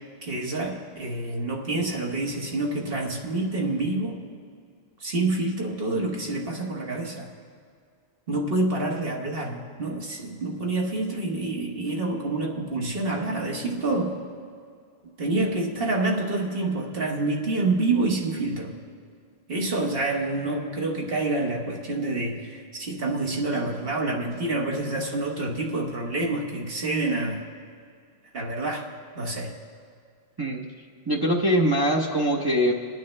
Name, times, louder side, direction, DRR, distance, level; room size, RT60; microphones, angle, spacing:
voice 1, 0.2-4.2 5.0-7.3 8.3-14.2 15.2-18.7 19.5-27.5 28.3-28.9 29.2-29.5, right 2 dB, 65° right, 0 dB, 1.5 m, -27 dB
voice 2, 31.1-32.7, equal, 25° right, -1 dB, 0.7 m, -22 dB
21.0 x 9.2 x 3.2 m, 2.2 s
omnidirectional pair, 1.0 m